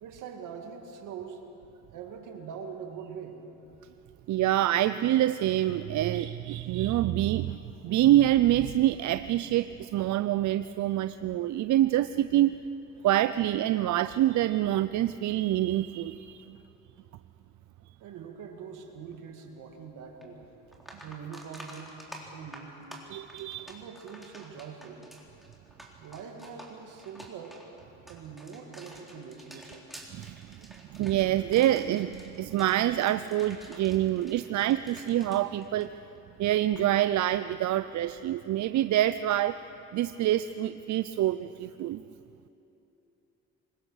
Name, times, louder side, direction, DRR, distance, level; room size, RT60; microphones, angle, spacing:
voice 1, 0.0-1.4 1.9-3.4 18.0-20.5 21.0-22.8 23.6-25.0 26.0-27.6 28.1-29.9, right 6 dB, 85° right, 4 dB, 2.3 m, -43 dB
voice 2, 4.3-12.6 13.0-16.6 23.1-23.7 30.1-30.6 30.9-35.9 36.4-39.6 39.9-42.0, right 13 dB, 70° right, 13 dB, 0.5 m, -26 dB
sound 1, 20.2-20.3 20.7-36.3 36.6-36.9 39.3-39.4, right 1 dB, ahead, 3.7 m, -50 dB
25.0 x 21.0 x 6.4 m, 3.0 s
cardioid pair, 90°, 30 cm